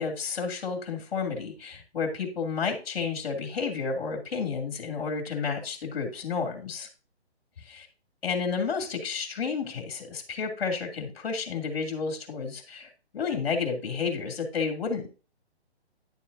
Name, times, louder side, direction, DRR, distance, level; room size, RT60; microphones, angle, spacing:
voice 1, 0.0-6.9 8.2-15.1, left 5 dB, 55° left, 3 dB, 2.9 m, -31 dB
11.0 x 7.4 x 2.7 m, 0.34 s
figure-of-eight pair, 145°, 33 cm